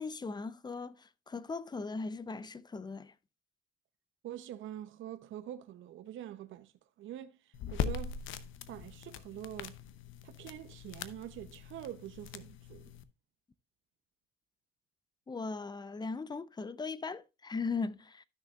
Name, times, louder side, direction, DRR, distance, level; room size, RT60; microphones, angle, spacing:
voice 1, 0.0-3.1 15.3-18.2, left 4 dB, 20° left, 0.6 m, -38 dB
voice 2, 4.2-6.7 7.0-8.2 8.7-9.8 10.2-12.9, right 12 dB, 75° right, 0.8 m, -45 dB
sound 1, 7.5-13.0, left 8 dB, 85° left, 0.8 m, -41 dB
12.5 x 6.4 x 2.4 m
cardioid pair, 90°, 20 cm